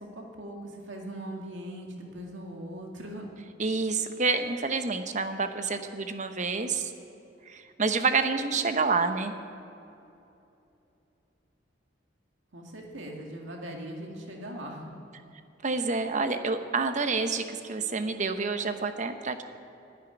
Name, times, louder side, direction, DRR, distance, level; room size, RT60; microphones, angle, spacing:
voice 1, 0.0-3.3 12.5-14.9, right 1 dB, 80° right, 0 dB, 2.0 m, -40 dB
voice 2, 3.6-6.9 7.5-9.3 15.6-19.4, right 4 dB, 40° right, 8 dB, 0.9 m, -28 dB
11.5 x 10.0 x 10.0 m, 2.9 s
head